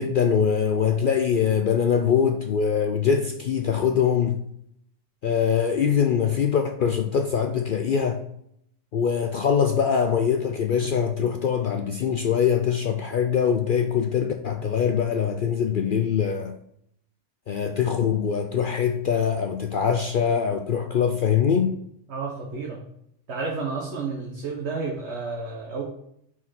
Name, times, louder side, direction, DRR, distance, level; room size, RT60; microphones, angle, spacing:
voice 1, 0.0-4.4 5.2-8.2 8.9-16.5 17.5-21.8, left 7 dB, 60° left, 0.6 m, -23 dB
voice 2, 22.1-22.8 23.3-25.8, right 4 dB, 60° right, 1.3 m, -31 dB
5.7 x 4.7 x 5.5 m
omnidirectional pair, 1.3 m